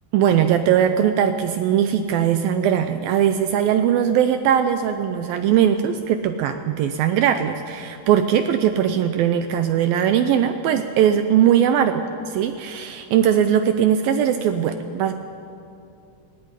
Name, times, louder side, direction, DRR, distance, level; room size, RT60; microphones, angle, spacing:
voice 1, 0.1-15.1, right 9 dB, 80° right, 8 dB, 2.2 m, -20 dB
17.5 x 16.5 x 9.8 m, 2.5 s
omnidirectional pair, 4.8 m